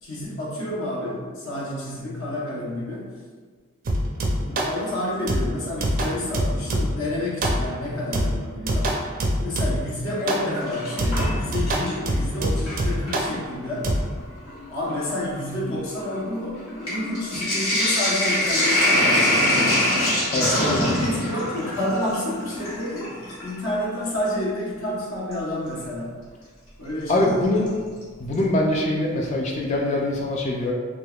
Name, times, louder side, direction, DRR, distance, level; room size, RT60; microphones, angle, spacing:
voice 1, 0.0-3.1 4.4-8.9 9.4-13.9 14.7-19.9 20.3-26.1 26.8-27.9, left 1 dB, 65° left, -6 dB, 0.9 m, -29 dB
sound 1, 3.9-4.8 5.3-7.1 7.4-7.8 8.1-10.0 10.3-10.5 11.0-13.4 13.8-14.0, right 1 dB, 40° right, 0.4 m, -25 dB
Sink (filling or washing), 10.1-12.1 12.4-13.2 14.0-14.1 14.4-23.5 25.3-25.4 27.2-27.7 28.0-28.1 28.3-28.4, left 1 dB, 85° left, 1.3 m, -24 dB
voice 2, 27.1-27.7 28.2-30.7, left 1 dB, 35° left, -1 dB, 0.3 m, -23 dB
3.4 x 2.9 x 2.3 m, 1.5 s
head